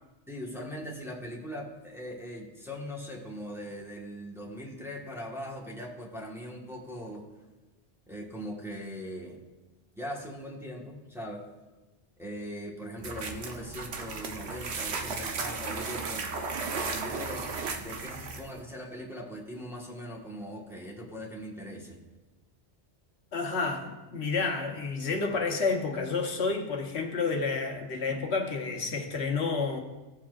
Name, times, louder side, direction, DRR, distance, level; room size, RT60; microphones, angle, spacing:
voice 1, 0.3-7.2 8.1-9.4 9.9-11.4 12.2-16.3 16.7-17.4 17.8-22.0, equal, ahead, -3 dB, 1.3 m, -40 dB
sound 1, 13.0-18.6, right 4 dB, 75° right, 1.1 m, -35 dB
voice 2, 23.3-29.8, left 4 dB, 75° left, 2 dB, 1.2 m, -30 dB
16.0 x 7.1 x 2.4 m, 1.1 s
omnidirectional pair, 1.1 m